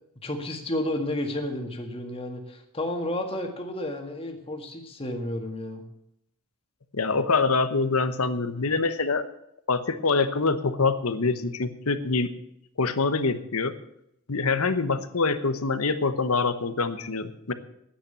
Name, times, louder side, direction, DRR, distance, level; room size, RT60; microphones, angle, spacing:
voice 1, 0.2-5.8, left 1 dB, 25° left, 3 dB, 1.8 m, -31 dB
voice 2, 6.9-9.2 9.7-12.3 12.8-13.7 14.3-17.5, left 4 dB, 75° left, 11 dB, 1.0 m, -25 dB
10.0 x 8.9 x 8.4 m, 0.77 s
head